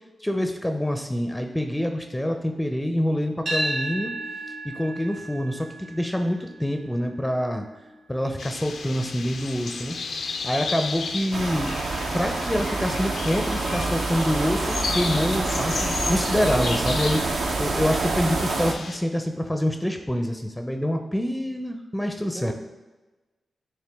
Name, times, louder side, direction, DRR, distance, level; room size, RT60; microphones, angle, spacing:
voice 1, 0.2-4.1 4.6-7.7 8.1-10.0 10.4-11.7 12.1-22.5, equal, 10° left, 5 dB, 0.5 m, -26 dB
sound 1, 3.5-11.6, right 1 dB, 60° right, 1.7 m, -36 dB
sound 2, 8.4-19.0, left 4 dB, 75° left, 0.4 m, -33 dB
voice 2, 10.9-11.2 11.5-11.6 22.3-22.5, right 3 dB, 40° right, 4 dB, 0.9 m, -40 dB
sound 3, 11.3-18.7, right 3 dB, 75° right, 0.6 m, -27 dB
8.9 x 3.2 x 3.4 m, 1.2 s
cardioid pair, 75°, 0 cm